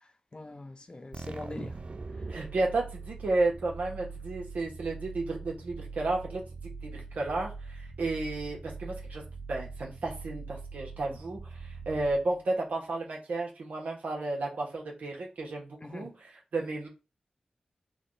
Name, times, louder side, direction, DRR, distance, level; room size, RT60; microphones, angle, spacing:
voice 1, 0.0-1.8 2.2-2.3 15.8-16.1, left 2 dB, 35° left, 0.6 m, -43 dB
sound 1, 1.1-12.6, right 4 dB, 45° right, 0.4 m, -42 dB
voice 2, 2.3-9.2 9.5-16.9, right 2 dB, 80° right, 1.3 m, -33 dB
3.7 x 2.4 x 3.9 m
cardioid pair, 40°, 3 cm